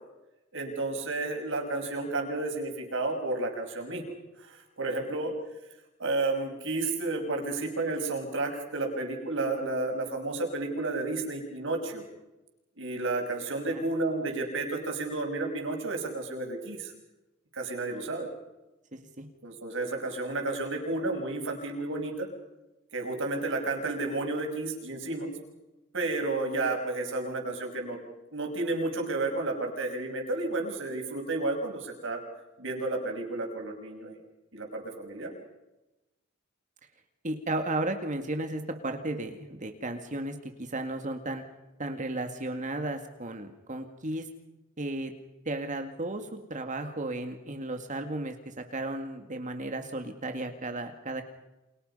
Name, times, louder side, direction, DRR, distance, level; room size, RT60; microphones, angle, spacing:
voice 1, 0.5-5.3 6.0-12.1 12.8-16.9 17.5-18.3 19.4-22.3 22.9-25.3 25.9-28.0 28.3-32.2 32.6-34.2 34.5-35.3, right 2 dB, 65° right, 3 dB, 5.9 m, -32 dB
voice 2, 18.9-19.3 37.2-41.4 41.8-44.3 44.8-45.1 45.5-51.2, right 2 dB, 40° right, 6 dB, 2.1 m, -34 dB
30.0 x 27.0 x 5.6 m, 0.99 s
head